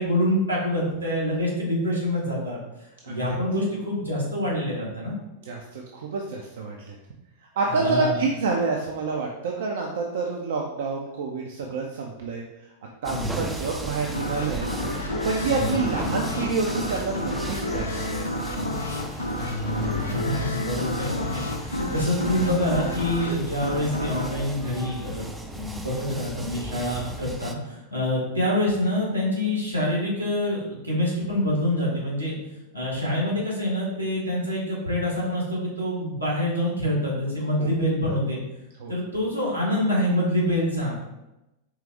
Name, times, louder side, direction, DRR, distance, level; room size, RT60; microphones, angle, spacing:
voice 1, 0.0-2.6 3.0-5.1 7.7-8.2 13.1-13.5 15.4-15.8 19.4-25.3 25.5-32.3 32.7-38.4 38.9-40.9, left 1 dB, 85° right, -4 dB, 1.7 m, -26 dB
voice 2, 5.4-7.0 7.6-12.4 13.0-14.7 15.2-18.3 37.6-37.7 38.8-38.9, right 4 dB, 60° right, 0 dB, 0.5 m, -28 dB
sound 1, 13.0-27.5, right 1 dB, 5° right, 0.4 m, -36 dB
sound 2, 14.1-25.6, left 1 dB, 80° left, 0.5 m, -31 dB
4.7 x 3.3 x 3.4 m, 0.96 s
figure-of-eight pair, 90°, 0 cm